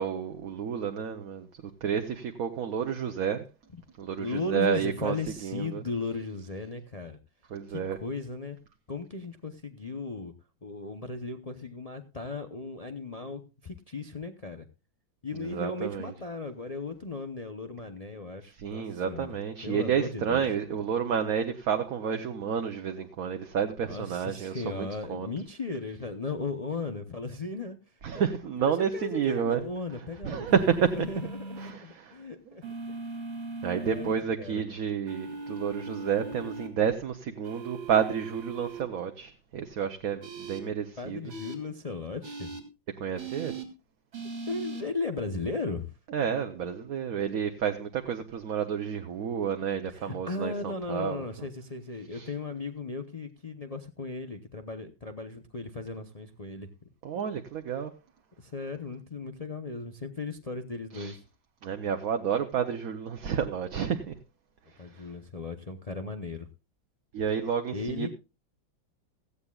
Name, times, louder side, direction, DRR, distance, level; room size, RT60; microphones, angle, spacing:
voice 1, 0.0-1.5 1.8-3.4 4.0-5.1 5.4-5.8 7.5-8.0 15.4-16.1 18.6-25.3 28.0-29.6 30.2-31.0 31.6-32.2 33.6-41.2 43.0-43.5 46.1-51.2 52.1-52.3 57.0-57.9 60.9-61.2 61.6-64.1 67.1-68.1, right 7 dB, 55° right, 1.2 m, -30 dB
voice 2, 4.2-7.2 7.7-8.6 8.9-10.3 10.6-14.6 15.2-19.4 19.6-20.4 23.8-27.8 28.1-28.2 28.6-33.0 33.7-34.1 34.4-34.6 41.0-42.5 44.5-45.9 49.9-56.7 58.4-61.2 64.8-66.5 67.7-68.1, left 3 dB, 65° left, 0.3 m, -36 dB
sound 1, 30.5-31.7 32.6-34.1 35.1-36.7 37.4-38.8 40.2-40.6 41.3-41.5 42.2-42.6 43.2-43.6 44.1-44.8, right 3 dB, 85° right, 3.3 m, -39 dB
17.0 x 15.0 x 2.4 m
omnidirectional pair, 2.1 m